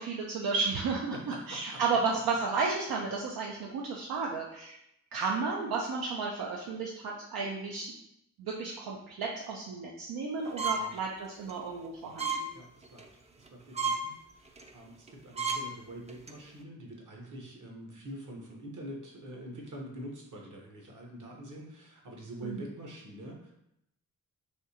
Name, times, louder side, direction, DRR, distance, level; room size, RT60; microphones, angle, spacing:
voice 1, 0.0-1.2 1.5-4.8 5.1-7.9 8.4-12.5 22.4-22.6, right 4 dB, 80° right, -2 dB, 0.5 m, -33 dB
voice 2, 1.1-1.8 10.7-11.0 12.0-12.3 12.5-13.0 13.5-23.5, right 1 dB, 55° right, 0 dB, 1.1 m, -45 dB
sound 1, 10.6-10.9 11.4-11.5 12.2-12.5 12.8-13.1 13.5-13.6 13.8-14.0 14.6-14.7 15.1-15.2 15.4-15.6 16.1-16.3, right 4 dB, 20° right, 0.4 m, -31 dB
3.5 x 2.7 x 2.8 m, 0.80 s
cardioid pair, 50°, 36 cm